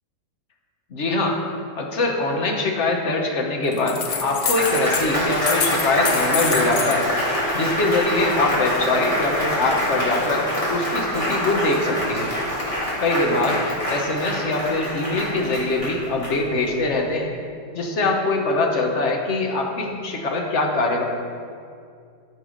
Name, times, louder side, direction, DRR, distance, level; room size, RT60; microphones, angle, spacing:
voice 1, 0.9-1.4 1.8-7.1 7.5-12.3 13.0-13.6 13.9-17.3 17.7-21.0, left 2 dB, 45° left, 1 dB, 1.1 m, -23 dB
sound 1, 3.7-5.1 5.3-7.0, left 7 dB, 85° left, 1.5 m, -27 dB
Applause, 4.1-16.8, equal, 20° left, 2.1 m, -25 dB
13.5 x 4.7 x 5.0 m, 2.3 s
omnidirectional pair, 1.9 m